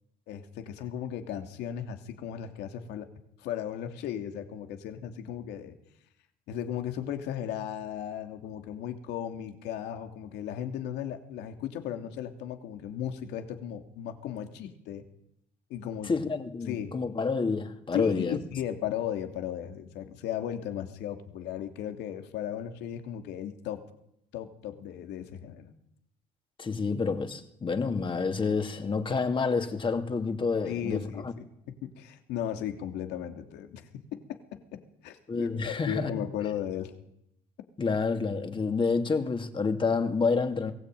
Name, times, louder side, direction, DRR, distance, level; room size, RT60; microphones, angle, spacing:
voice 1, 0.3-3.1 3.4-5.8 6.5-15.0 15.7-16.1 16.7-16.9 17.9-23.8 24.3-25.7 30.6-34.2 34.5-36.9, left 10 dB, 85° left, 2.8 m, -36 dB
voice 2, 16.0-18.4 26.6-31.3 35.3-36.1 37.8-40.7, left 4 dB, 30° left, 2.7 m, -28 dB
22.5 x 17.5 x 9.2 m
cardioid pair, 110°, 17 cm